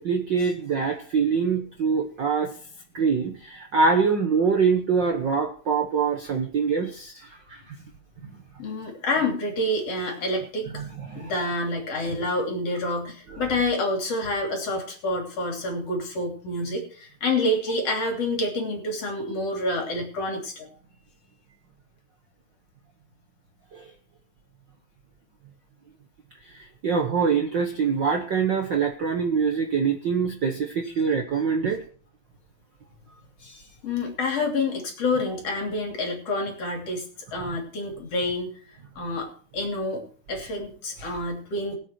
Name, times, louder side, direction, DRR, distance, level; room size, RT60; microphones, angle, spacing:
voice 1, 0.0-2.5 2.9-7.6 10.7-11.3 12.8-12.9 23.7-23.8 26.5-31.8, right 5 dB, 80° right, 4 dB, 1.0 m, -24 dB
voice 2, 8.6-10.7 11.1-20.7 33.4-38.6 39.0-40.0 40.3-41.8, left 2 dB, 45° left, 2 dB, 3.9 m, -28 dB
21.0 x 8.0 x 4.5 m, 0.43 s
omnidirectional pair, 4.0 m